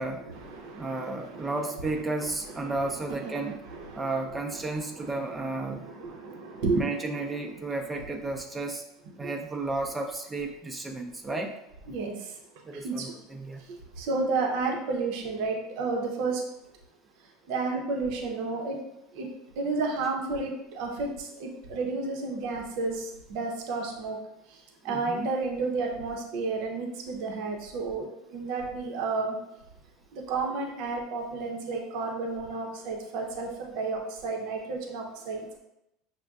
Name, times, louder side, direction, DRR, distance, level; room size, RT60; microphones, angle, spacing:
voice 1, 0.3-1.6 2.2-2.8 3.1-7.6 9.2-9.3 11.9-12.1 12.8-13.1 14.0-16.4 17.5-18.8 19.2-19.3 19.6-24.2 24.8-28.1 28.3-29.4 30.1-35.6, right 3 dB, 65° right, 1 dB, 0.8 m, -32 dB
voice 2, 0.8-3.6 3.9-5.8 6.7-8.8 9.2-11.5 12.6-13.6 24.9-25.3, right 2 dB, 15° right, 2 dB, 0.6 m, -33 dB
6.1 x 2.2 x 2.4 m, 0.84 s
hypercardioid pair, 85°, 0 cm